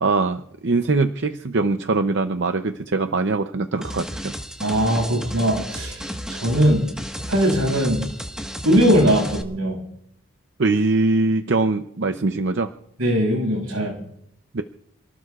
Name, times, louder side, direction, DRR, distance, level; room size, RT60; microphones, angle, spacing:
voice 1, 0.0-4.3 10.6-12.7 14.5-14.6, right 3 dB, 55° right, 8 dB, 0.6 m, -22 dB
sound 1, 3.8-9.4, equal, 5° right, 1.4 m, -33 dB
voice 2, 4.6-6.9 7.3-8.0 8.6-9.8 13.0-14.0, equal, 80° right, 1 dB, 7.0 m, -20 dB
28.5 x 19.0 x 2.4 m, 0.75 s
head